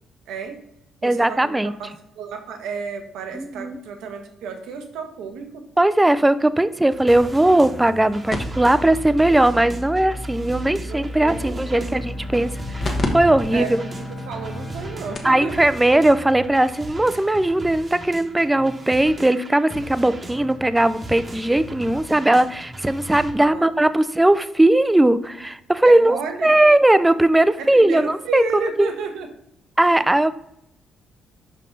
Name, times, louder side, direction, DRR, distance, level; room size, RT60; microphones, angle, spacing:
voice 1, 0.3-0.6 1.0-5.6 10.8-12.0 13.5-15.7 23.4-23.7 25.8-26.5 27.6-29.3 30.0-30.1, right 5 dB, 90° right, 5 dB, 1.0 m, -32 dB
voice 2, 1.0-1.7 3.3-3.8 5.8-13.8 15.2-28.9 29.8-30.3, right 1 dB, 10° right, 14 dB, 0.4 m, -18 dB
sound 1, 6.9-23.3, right 1 dB, 30° right, 1.0 m, -38 dB
sound 2, 8.3-13.1 13.4-13.5 14.2-14.3 14.8-14.9 15.1-15.4 16.6-16.7, left 1 dB, 40° left, 1.1 m, -30 dB
Bowed string instrument, 11.9-16.9, equal, 65° left, 1.2 m, -37 dB
5.4 x 5.4 x 3.8 m, 0.77 s
cardioid pair, 90°, 0 cm